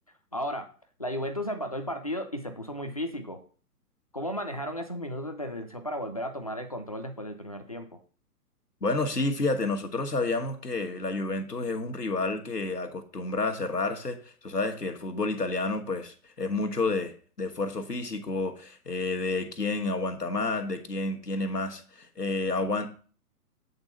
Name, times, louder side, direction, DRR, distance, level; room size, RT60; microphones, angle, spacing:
voice 1, 0.3-0.7 1.0-3.4 4.1-8.0, equal, 25° left, 0.3 m, -34 dB
voice 2, 8.8-22.9, left 3 dB, 85° left, 1.3 m, -30 dB
8.0 x 4.0 x 5.5 m
figure-of-eight pair, 125°, 47 cm